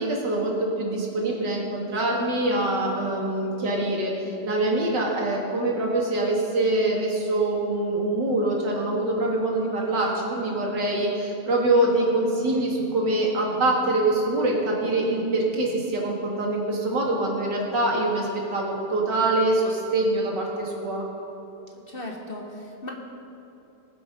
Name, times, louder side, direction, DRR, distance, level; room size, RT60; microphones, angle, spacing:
voice 1, 0.0-21.0, right 2 dB, 85° right, -2 dB, 2.8 m, -24 dB
voice 2, 21.7-22.9, left 1 dB, 35° left, 0 dB, 1.3 m, -37 dB
21.5 x 7.8 x 5.3 m, 2.8 s
omnidirectional pair, 1.9 m